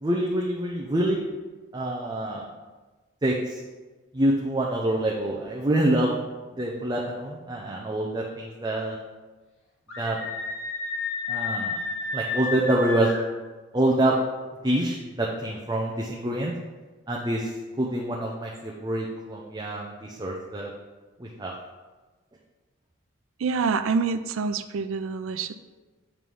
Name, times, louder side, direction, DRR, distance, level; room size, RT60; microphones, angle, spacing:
voice 1, 0.0-1.3 1.7-2.5 3.2-3.6 4.1-6.2 6.6-9.0 10.0-10.2 11.3-11.8 12.1-13.1 13.7-14.2 14.6-16.5 17.1-20.7 21.2-21.5, right 1 dB, 20° right, -2 dB, 0.5 m, -26 dB
Screaming, 9.9-13.2, left 3 dB, 85° left, 1.9 m, -31 dB
voice 2, 23.4-25.5, right 5 dB, 80° right, 10 dB, 0.4 m, -26 dB
7.4 x 3.2 x 5.3 m, 1.3 s
head